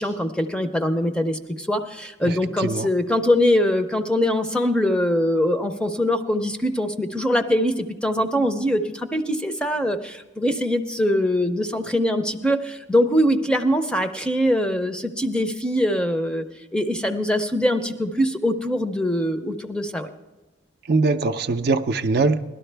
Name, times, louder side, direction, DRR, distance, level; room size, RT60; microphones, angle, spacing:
voice 1, 0.0-16.4 16.7-20.1, equal, 5° left, 7 dB, 0.5 m, -22 dB
voice 2, 2.2-2.9 20.9-22.4, right 3 dB, 50° right, 9 dB, 0.5 m, -22 dB
17.5 x 12.0 x 3.3 m, 1.1 s
head